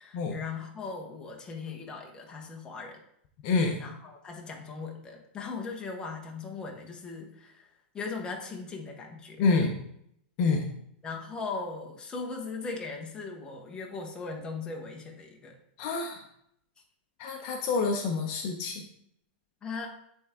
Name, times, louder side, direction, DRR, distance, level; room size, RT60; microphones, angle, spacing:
voice 1, 0.0-3.0 3.8-7.7 7.9-9.7 11.0-15.5 19.6-19.9, left 4 dB, 15° left, 1 dB, 1.0 m, -39 dB
voice 2, 3.4-3.8 9.4-9.8 10.4-10.7 15.8-16.2 17.2-18.8, left 4 dB, 45° left, 2 dB, 0.7 m, -27 dB
8.3 x 3.5 x 3.6 m, 0.72 s
supercardioid pair, 155°, 6 cm